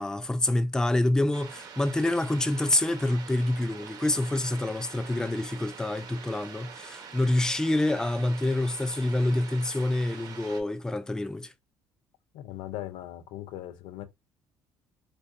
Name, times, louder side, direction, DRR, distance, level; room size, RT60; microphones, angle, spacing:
voice 1, 0.0-11.5, left 1 dB, 10° left, 0.5 m, -27 dB
sound 1, 1.3-10.6, right 6 dB, 50° right, 1.1 m, -45 dB
voice 2, 12.3-14.0, left 13 dB, 85° left, 0.6 m, -39 dB
4.3 x 2.5 x 2.5 m
cardioid pair, 105°, 8 cm